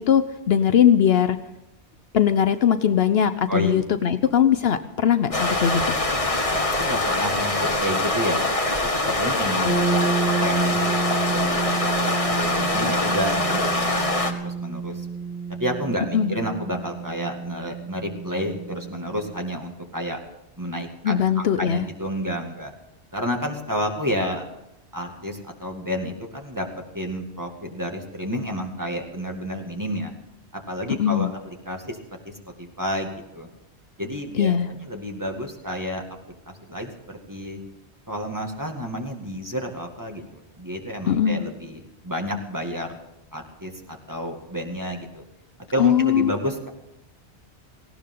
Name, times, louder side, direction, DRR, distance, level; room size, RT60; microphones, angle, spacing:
voice 1, 0.0-1.4 2.1-6.0 16.1-16.4 21.0-21.8 31.0-31.3 34.4-34.7 41.1-41.5 45.8-46.3, left 9 dB, 65° left, 11 dB, 0.9 m, -20 dB
sound 1, 5.3-14.3, left 2 dB, 30° left, 1.5 m, -24 dB
voice 2, 6.7-8.4 9.2-10.1 10.4-15.1 15.6-20.2 20.6-22.7 23.1-24.4 24.9-26.7 26.9-30.1 30.7-32.0 32.2-32.3 32.6-33.5 34.0-36.0 36.5-37.6 38.1-43.0 43.3-45.2 45.7-46.7, equal, 15° right, 2 dB, 2.1 m, -30 dB
sound 2, 9.6-19.4, right 4 dB, 85° left, 1.6 m, -29 dB
18.5 x 17.0 x 3.8 m, 0.91 s
omnidirectional pair, 1.1 m